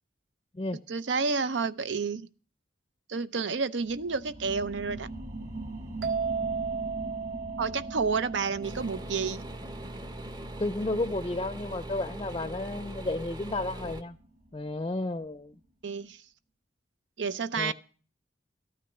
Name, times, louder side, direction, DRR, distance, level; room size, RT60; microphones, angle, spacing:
voice 1, 0.9-2.3 3.1-5.1 7.6-9.4 15.8-16.2 17.2-17.7, right 5 dB, 80° right, 0.7 m, -30 dB
sound 1, 3.8-15.0 15.4-15.5, right 1 dB, 40° right, 1.9 m, -43 dB
sound 2, 6.0-9.6, right 5 dB, 65° right, 1.6 m, -35 dB
sound 3, 8.6-14.0, right 1 dB, 25° right, 0.7 m, -41 dB
voice 2, 10.6-14.2 14.5-15.6 17.6-17.7, left 2 dB, 25° left, 0.5 m, -32 dB
14.0 x 9.3 x 5.9 m
head